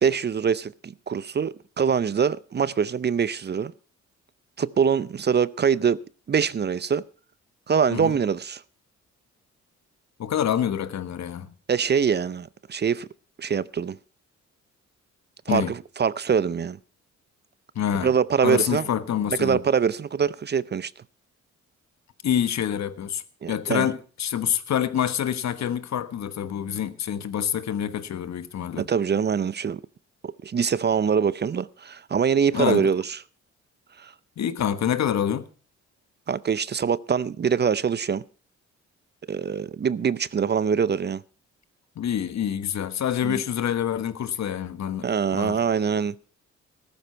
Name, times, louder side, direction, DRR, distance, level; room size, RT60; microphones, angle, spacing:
voice 1, 0.0-3.7 4.6-6.0 6.3-7.0 7.7-8.6 11.7-13.1 13.4-14.0 15.5-16.8 18.0-18.9 19.3-20.9 23.4-23.9 28.8-29.8 30.4-33.2 34.0-34.1 36.3-38.2 39.3-41.2 43.2-43.4 45.0-46.2, right 6 dB, 35° right, 0.6 m, -24 dB
voice 2, 10.2-11.5 15.5-15.7 17.7-18.1 18.4-19.6 22.2-28.9 32.5-32.9 34.4-35.5 42.0-45.1 45.3-45.6, left 9 dB, 65° left, 1.3 m, -26 dB
14.5 x 13.0 x 4.4 m
cardioid pair, 80°, 29 cm